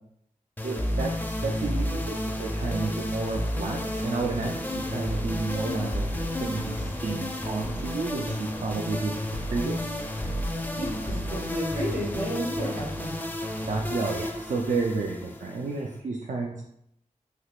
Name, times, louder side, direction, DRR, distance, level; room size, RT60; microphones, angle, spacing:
sound 1, 0.6-16.0, left 1 dB, 15° left, 0.4 m, -31 dB
voice 1, 0.6-1.1 1.4-9.1 9.5-9.9 13.7-16.6, right 3 dB, 65° right, -1 dB, 0.4 m, -31 dB
voice 2, 10.7-13.1, right 1 dB, 85° right, -5 dB, 1.3 m, -32 dB
3.3 x 2.9 x 2.4 m, 0.73 s
wide cardioid pair, 75°, 14 cm